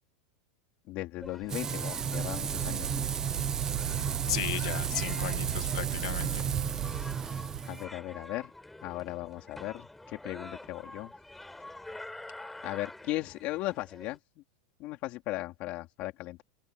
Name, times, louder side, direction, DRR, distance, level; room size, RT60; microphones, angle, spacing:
voice 1, 0.9-3.1 7.6-8.5 8.8-11.1 12.6-14.2 14.8-16.4, left 18 dB, 35° left, 4.0 m, -37 dB
sound 1, 1.2-14.2, left 2 dB, 5° left, 4.4 m, -48 dB
Wind, 1.2-7.6, right 18 dB, 50° right, 0.8 m, -37 dB
Frying (food), 1.5-7.8, right 6 dB, 15° right, 0.8 m, -34 dB
voice 2, 4.3-6.4, left 18 dB, 60° left, 1.8 m, -35 dB
supercardioid pair, 170°, 4 cm